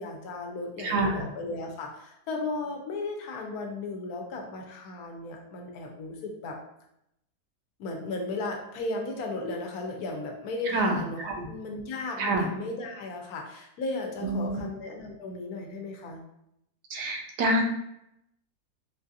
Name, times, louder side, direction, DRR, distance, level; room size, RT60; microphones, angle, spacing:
voice 1, 0.0-6.6 7.8-16.2, left 2 dB, 75° left, 2 dB, 1.1 m, -35 dB
voice 2, 0.8-1.3 10.7-11.5 12.2-12.5 14.2-14.6 16.9-17.6, right 2 dB, 90° right, 2 dB, 1.2 m, -27 dB
3.8 x 2.4 x 2.6 m, 0.80 s
omnidirectional pair, 1.7 m